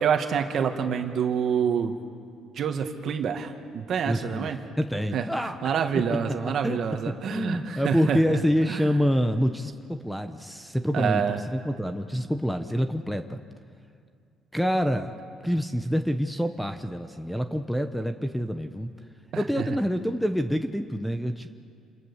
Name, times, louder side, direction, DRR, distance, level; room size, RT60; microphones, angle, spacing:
voice 1, 0.0-2.0 2.5-4.6 5.1-5.3 5.6-8.4 8.7-8.9 10.9-11.4 19.3-19.8, right 7 dB, 50° right, 5 dB, 1.9 m, -27 dB
voice 2, 4.1-5.6 6.3-6.8 7.1-11.2 11.5-13.4 14.5-15.2 15.4-18.9 19.4-21.5, equal, ahead, 8 dB, 0.9 m, -27 dB
28.0 x 27.5 x 7.2 m, 2.3 s
cardioid pair, 135°, 0 cm